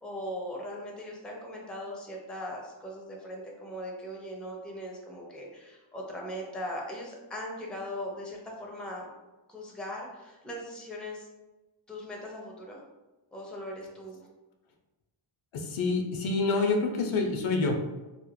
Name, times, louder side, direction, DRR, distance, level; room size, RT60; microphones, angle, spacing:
voice 1, 0.0-9.1 9.5-11.3 11.9-12.8 13.3-14.2, equal, ahead, -2 dB, 0.4 m, -39 dB
voice 2, 15.5-17.8, left 3 dB, 80° left, 3 dB, 0.6 m, -27 dB
2.4 x 2.0 x 3.0 m, 1.1 s
wide cardioid pair, 110°, 48 cm